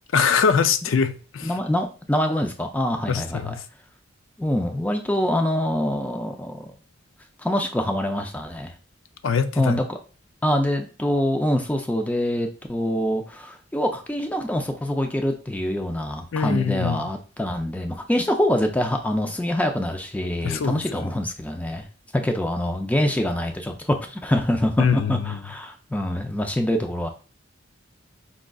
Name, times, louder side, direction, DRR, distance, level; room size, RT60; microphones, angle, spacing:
voice 1, 0.1-1.6 3.1-3.6 9.2-9.8 16.3-17.0 20.4-21.1 24.8-25.4, left 6 dB, 85° left, 0.4 m, -23 dB
voice 2, 1.4-3.5 4.4-6.7 7.4-8.7 9.6-10.0 10.4-21.9 22.1-27.1, left 1 dB, 10° left, 0.4 m, -25 dB
5.1 x 3.7 x 2.3 m
head